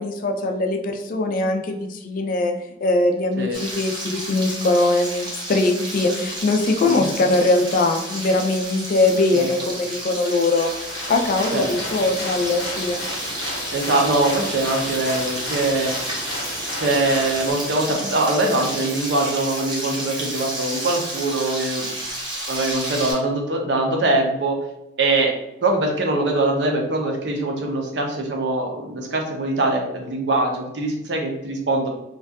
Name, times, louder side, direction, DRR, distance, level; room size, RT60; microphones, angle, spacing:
voice 1, 0.0-2.5 2.8-13.0, left 2 dB, 50° left, 4 dB, 0.3 m, -21 dB
Frying (food), 3.5-23.1, right 1 dB, 25° right, 0.6 m, -31 dB
sound 1, 10.6-17.5, left 1 dB, 90° left, 0.8 m, -32 dB
voice 2, 13.7-16.4 16.8-21.9 22.5-24.6 25.0-25.3 25.6-31.9, right 2 dB, 70° right, 2 dB, 0.5 m, -22 dB
2.6 x 2.3 x 2.3 m, 0.90 s
head